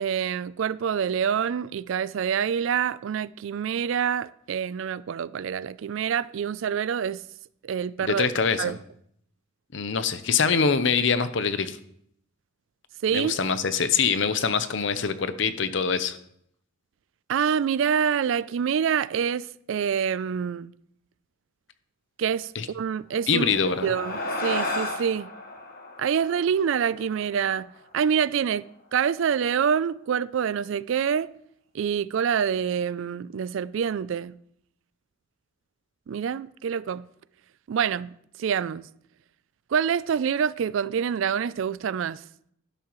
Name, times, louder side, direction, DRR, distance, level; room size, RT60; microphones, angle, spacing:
voice 1, 0.0-7.2 7.6-8.8 13.0-13.4 17.3-20.7 22.2-23.5 23.8-25.3 26.0-27.7 27.9-28.7 28.9-31.3 31.7-34.4 36.1-37.1 37.7-38.1 38.4-38.9 39.7-42.2, right 7 dB, 65° right, 0.3 m, -26 dB
voice 2, 8.0-8.7 9.7-11.8 13.1-16.2 22.5-22.7 23.3-23.9, left 5 dB, 60° left, 0.7 m, -24 dB
sound 1, 23.2-28.0, left 2 dB, 45° left, 1.4 m, -34 dB
12.0 x 11.0 x 3.1 m
head